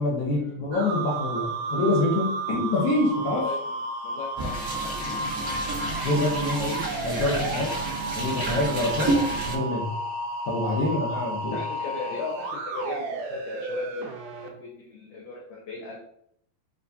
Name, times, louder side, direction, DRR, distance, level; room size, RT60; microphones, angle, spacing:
voice 1, 0.0-3.5 6.0-7.8 8.1-9.9 10.5-11.6, left 2 dB, 70° left, -3 dB, 2.0 m, -26 dB
sound 1, 0.7-14.5, right 2 dB, 80° right, 2.0 m, -32 dB
voice 2, 4.0-5.1 5.5-5.8 7.8-8.0 10.8-11.0 11.5-16.0, left 3 dB, 85° left, -2 dB, 1.6 m, -38 dB
sound 2, 4.4-9.6, right 2 dB, 50° right, 1.1 m, -30 dB
6.8 x 2.4 x 2.7 m, 0.72 s
omnidirectional pair, 4.2 m